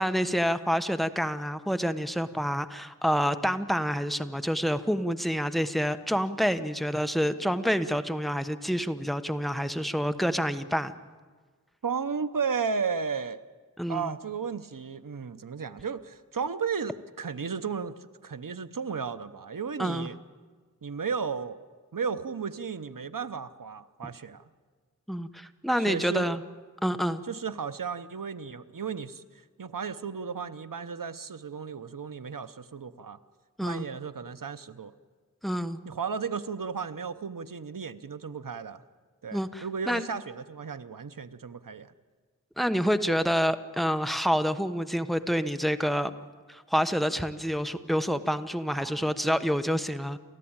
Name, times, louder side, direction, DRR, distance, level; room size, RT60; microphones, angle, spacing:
voice 1, 0.0-10.9 13.8-14.1 19.8-20.1 25.1-26.4 26.8-27.2 33.6-33.8 35.4-35.8 39.3-40.0 42.6-46.1 46.5-50.2, equal, ahead, 10 dB, 1.1 m, -28 dB
voice 2, 11.8-13.4 13.9-20.2 20.8-21.6 21.9-24.5 25.8-26.3 27.3-33.2 33.6-34.9 35.8-38.8 39.2-41.9 48.7-49.4, right 6 dB, 85° right, 12 dB, 0.9 m, -34 dB
30.0 x 14.0 x 8.8 m, 1.5 s
wide cardioid pair, 45°, 32 cm